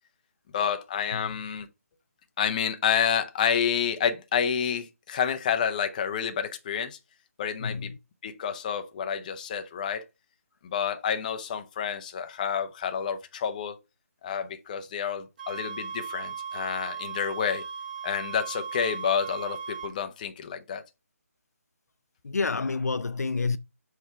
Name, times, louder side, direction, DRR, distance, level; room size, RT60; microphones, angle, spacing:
voice 1, 0.5-1.7 2.4-7.0 7.4-7.9 8.2-10.0 10.6-13.8 14.2-17.6 18.0-20.8, left 7 dB, 30° left, 0.7 m, -29 dB
voice 2, 1.1-1.5 7.6-8.0 22.2-23.6, left 4 dB, 80° left, 0.5 m, -29 dB
sound 1, 15.4-19.9, right 6 dB, 35° right, 1.0 m, -37 dB
6.3 x 4.5 x 3.4 m
figure-of-eight pair, 155°, 8 cm